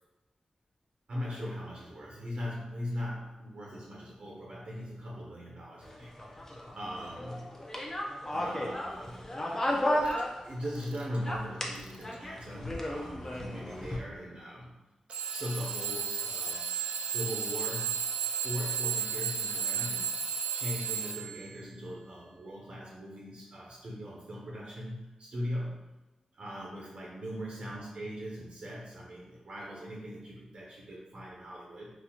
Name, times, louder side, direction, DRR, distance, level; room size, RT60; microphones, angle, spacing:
voice 1, 1.1-7.5 8.3-9.3 10.4-14.8 15.3-16.7 17.0-18.0 18.4-20.3 20.5-25.9 26.4-31.9, equal, 65° right, -4 dB, 0.7 m, -40 dB
sound 1, 5.8-10.9 11.2-14.0, left 1 dB, 20° left, 0.5 m, -34 dB
Alarm / Clock, 10.1-10.2 10.7-11.2 11.7-12.1 13.0-13.1 15.1-21.5, right 6 dB, 85° right, 0.4 m, -33 dB
4.0 x 2.4 x 2.8 m, 1.1 s
wide cardioid pair, 110°, 2 cm